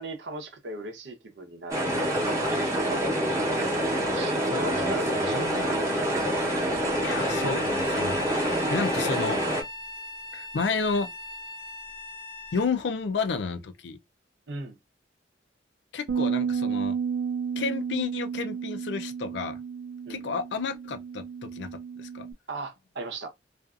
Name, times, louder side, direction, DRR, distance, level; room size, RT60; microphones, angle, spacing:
voice 1, 0.0-2.0 2.7-3.1 4.1-6.2 14.5-14.8 20.1-20.2 22.5-23.3, right 2 dB, 80° right, 0.8 m, -38 dB
sound 1, 1.7-9.6, equal, 15° right, 0.8 m, -26 dB
voice 2, 4.4-4.9 5.2-5.6 7.0-9.4 10.3-11.1 12.5-14.0 15.9-17.0 17.6-19.6 20.1-22.3, left 4 dB, 75° left, 0.4 m, -31 dB
Bowed string instrument, 6.7-12.7, left 3 dB, 25° left, 0.5 m, -40 dB
Bass guitar, 16.1-22.3, right 6 dB, 65° right, 0.3 m, -32 dB
2.5 x 2.4 x 2.4 m
head